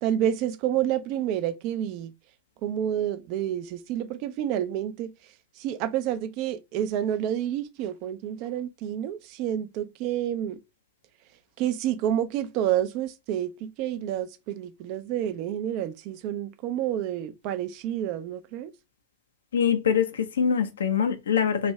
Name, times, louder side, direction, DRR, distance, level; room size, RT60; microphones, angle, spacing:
voice 1, 0.0-2.1 2.6-5.1 5.6-10.6 11.6-18.7, right 11 dB, 45° right, 0.4 m, -29 dB
voice 2, 19.5-21.7, left 7 dB, 75° left, 0.6 m, -24 dB
3.2 x 2.6 x 3.1 m
figure-of-eight pair, 100°, 0 cm